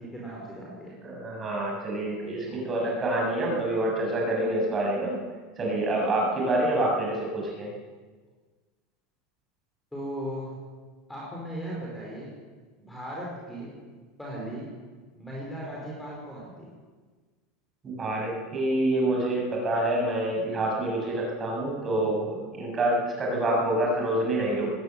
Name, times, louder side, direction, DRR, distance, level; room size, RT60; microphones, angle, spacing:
voice 1, 0.0-0.9 2.5-2.7 9.9-10.5 11.1-12.3 12.8-13.7 14.2-14.7 15.2-16.7, equal, 5° left, -4 dB, 4.9 m, -37 dB
voice 2, 1.0-5.1 5.6-7.7 17.8-24.7, right 1 dB, 20° right, -1 dB, 7.1 m, -27 dB
20.5 x 16.0 x 9.1 m, 1.4 s
supercardioid pair, 165°, 0 cm